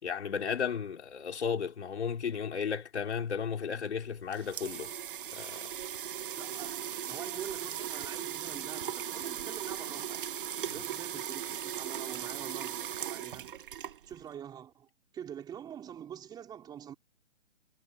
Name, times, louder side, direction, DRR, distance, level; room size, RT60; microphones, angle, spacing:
voice 1, 0.0-4.9 5.3-5.7, left 6 dB, 60° left, 4.4 m, -34 dB
sound 1, 4.0-14.3, right 9 dB, 45° right, 1.4 m, -38 dB
voice 2, 6.4-10.3 10.7-13.5 14.1-14.9 15.1-16.9, right 9 dB, 10° right, 4.5 m, -45 dB
hypercardioid pair, 155°, 37 cm